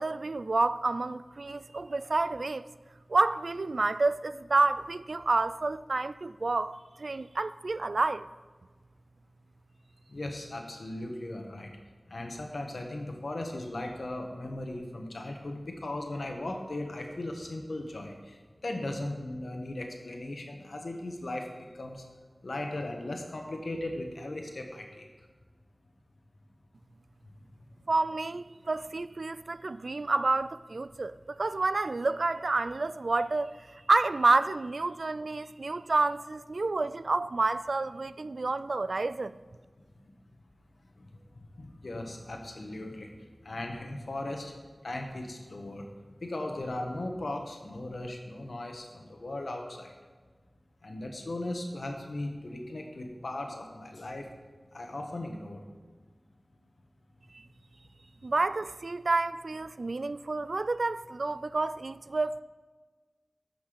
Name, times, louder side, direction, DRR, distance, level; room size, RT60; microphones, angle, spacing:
voice 1, 0.0-2.7 3.1-8.3 27.9-39.4 57.3-57.5 58.2-62.4, right 3 dB, 80° right, 0.3 m, -29 dB
voice 2, 10.1-11.7 12.1-18.4 18.6-21.4 21.8-22.0 22.4-25.0 41.0-41.1 41.6-44.5 44.8-45.9 46.2-49.9 50.8-54.2 54.7-55.6, left 1 dB, 90° left, 1.3 m, -37 dB
13.5 x 5.9 x 5.1 m
wide cardioid pair, 55°, 0 cm